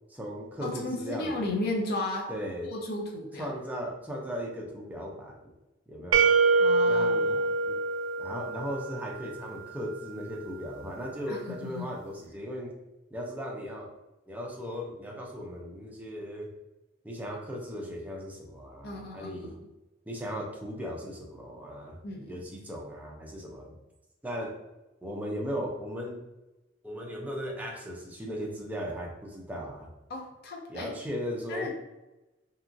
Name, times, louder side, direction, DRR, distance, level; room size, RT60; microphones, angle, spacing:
voice 1, 0.1-1.5 2.3-2.7 3.4-5.5 5.9-6.3 6.9-7.4 7.6-7.8 8.2-12.7 13.1-13.9 14.3-16.5 17.0-19.6 20.1-22.0 22.3-23.7 24.2-24.6 25.0-26.2 26.8-29.9 30.7-31.7, equal, 10° right, -1 dB, 0.5 m, -37 dB
voice 2, 0.6-2.3 2.6-3.5 6.6-7.5 11.3-11.9 18.8-19.5 22.0-22.4 30.1-30.9 31.5-31.7, left 2 dB, 55° left, 0 dB, 0.5 m, -34 dB
sound 1, 6.1-9.0, right 3 dB, 90° right, 0.3 m, -24 dB
2.9 x 2.4 x 2.6 m, 1.0 s
head